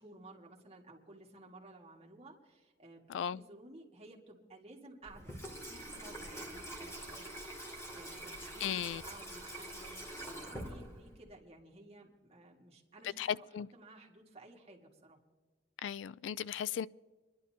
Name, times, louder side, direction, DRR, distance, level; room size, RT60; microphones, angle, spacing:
voice 1, 0.0-5.3 5.7-7.3 7.9-15.2, right 2 dB, 35° right, 1.9 m, -55 dB
voice 2, 3.1-3.4 8.6-9.0 13.2-13.7 15.8-16.9, left 9 dB, 80° left, 0.3 m, -36 dB
Water tap faucet / Sink (filling or washing), 5.0-11.3, right 1 dB, 15° left, 2.5 m, -45 dB
25.5 x 11.5 x 2.8 m
head